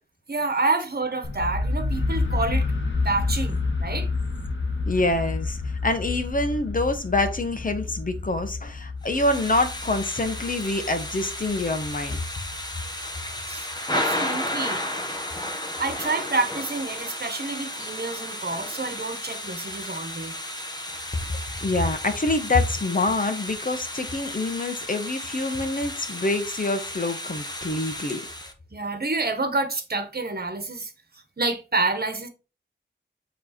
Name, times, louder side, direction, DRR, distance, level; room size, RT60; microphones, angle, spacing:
voice 1, 0.3-4.1 13.5-14.8 15.8-20.3 28.7-32.3, right 3 dB, 55° right, 1.3 m, -28 dB
sound 1, 1.2-13.1, left 3 dB, 80° left, 1.2 m, -29 dB
voice 2, 4.9-12.2 21.6-28.2, left 2 dB, 45° left, 1.3 m, -26 dB
Thunder / Rain, 9.0-28.5, left 1 dB, 20° left, 1.3 m, -33 dB
7.5 x 3.4 x 4.3 m
wide cardioid pair, 70°, 19 cm